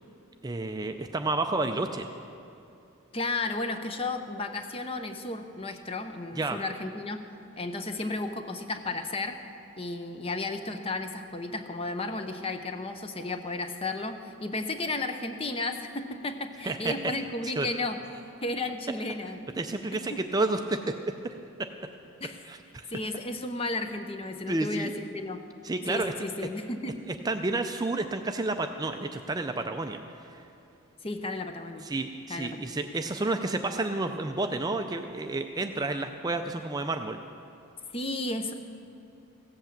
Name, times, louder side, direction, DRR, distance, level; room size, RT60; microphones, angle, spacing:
voice 1, 0.4-2.1 6.4-6.6 16.6-16.9 17.4-17.7 19.6-20.9 21.2-21.3 21.6-21.7 22.5-22.9 24.5-24.9 25.6-26.1 26.4-26.5 27.2-30.0 30.3-30.4 31.8-37.2, right 2 dB, 20° right, 6 dB, 0.4 m, -30 dB
voice 2, 3.1-7.2 7.6-9.4 9.8-18.0 18.4-19.4 19.9-20.2 22.2-22.4 22.9-25.4 25.9-27.0 31.0-31.9 32.3-32.6 37.9-38.5, left 2 dB, 25° left, 7 dB, 0.7 m, -33 dB
16.0 x 8.0 x 7.3 m, 2.6 s
head